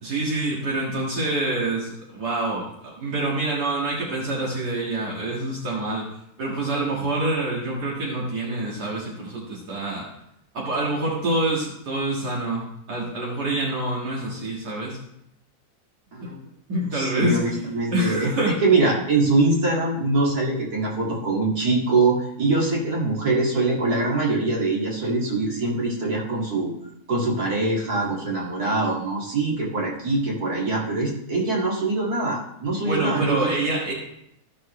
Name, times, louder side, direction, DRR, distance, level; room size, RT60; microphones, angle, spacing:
voice 1, 0.0-6.1 6.4-10.1 10.5-15.0 16.2-16.3 16.7-17.6 17.9-18.6 32.8-33.9, right 2 dB, 90° right, -5 dB, 2.4 m, -26 dB
voice 2, 16.9-26.7 27.1-33.5, right 3 dB, 70° right, -4 dB, 2.8 m, -23 dB
15.0 x 6.4 x 3.2 m, 0.77 s
omnidirectional pair, 1.7 m